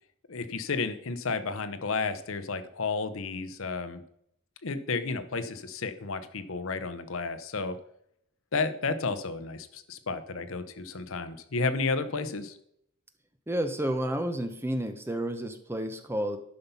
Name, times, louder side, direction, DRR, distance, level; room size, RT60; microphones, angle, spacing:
voice 1, 0.3-4.0 4.6-7.8 8.5-12.6, left 4 dB, 65° left, 12 dB, 0.8 m, -32 dB
voice 2, 13.5-16.4, right 1 dB, 10° right, 7 dB, 0.7 m, -31 dB
10.5 x 5.7 x 5.6 m, 0.72 s
head